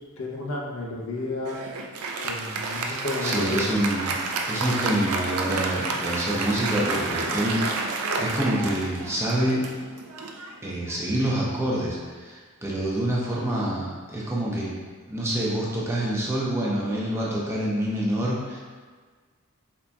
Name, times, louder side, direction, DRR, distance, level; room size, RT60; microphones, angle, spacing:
voice 1, 0.2-1.6 2.2-3.7, left 2 dB, 70° left, -2 dB, 0.6 m, -32 dB
Applause, 1.4-11.3, right 3 dB, 90° right, 0.4 m, -30 dB
voice 2, 3.2-4.2 4.5-9.7 10.6-14.7 15.1-18.6, right 1 dB, 10° right, -5 dB, 0.5 m, -27 dB
3.9 x 3.3 x 2.3 m, 1.5 s
head